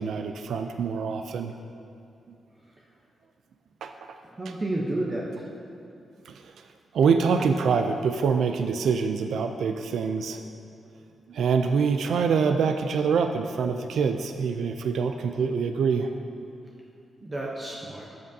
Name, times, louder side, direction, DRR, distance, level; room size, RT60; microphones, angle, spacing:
voice 1, 0.0-1.5 3.8-3.9 6.3-6.7 6.9-10.4 11.3-16.2, right 5 dB, 80° right, 6 dB, 0.4 m, -25 dB
voice 2, 4.3-5.5 17.2-18.1, right 1 dB, 25° right, -3 dB, 0.8 m, -31 dB
12.5 x 7.7 x 2.7 m, 2.5 s
wide cardioid pair, 125°, 0 cm